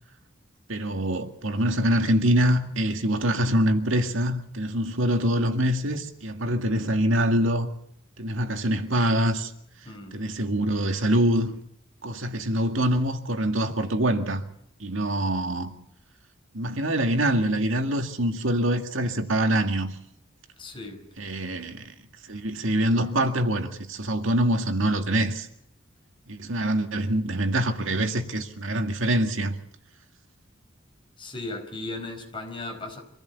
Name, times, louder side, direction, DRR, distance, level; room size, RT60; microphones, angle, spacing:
voice 1, 0.7-7.7 8.2-9.5 10.1-11.6 12.0-14.4 14.8-15.7 16.5-20.0 21.2-21.9 22.3-25.5 26.3-29.6, right 1 dB, 80° right, 2.0 m, -25 dB
voice 2, 9.8-10.2 20.6-21.0 31.2-33.0, left 2 dB, 25° left, 4.8 m, -36 dB
25.0 x 16.0 x 8.2 m
head